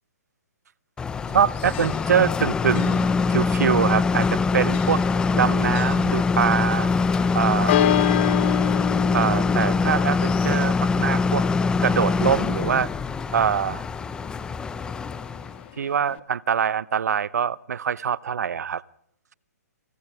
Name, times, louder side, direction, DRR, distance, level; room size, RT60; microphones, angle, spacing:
sound 1, 1.0-15.6, left 4 dB, 10° left, 0.9 m, -23 dB
Church bell, 1.1-16.2, left 12 dB, 40° left, 1.7 m, -32 dB
voice 1, 1.3-5.0 5.3-6.9 7.3-7.8 9.1-11.5 11.8-12.9 13.3-13.8 15.8-18.8, right 7 dB, 70° right, 20 dB, 0.9 m, -24 dB
30.0 x 29.5 x 3.6 m, 0.70 s
hypercardioid pair, 140°, 9 cm